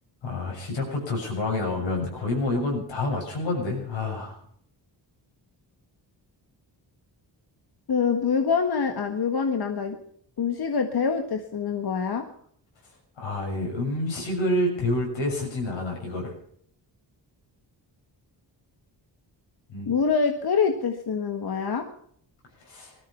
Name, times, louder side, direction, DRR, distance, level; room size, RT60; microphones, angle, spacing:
voice 1, 0.2-4.4 13.2-16.3 19.7-19.9 22.6-22.9, left 2 dB, 90° left, 0 dB, 6.8 m, -28 dB
voice 2, 7.9-10.0 10.4-12.2 19.9-21.8, left 5 dB, 55° left, 5 dB, 1.7 m, -25 dB
18.5 x 13.5 x 5.8 m, 0.62 s
cardioid pair, 75°, 44 cm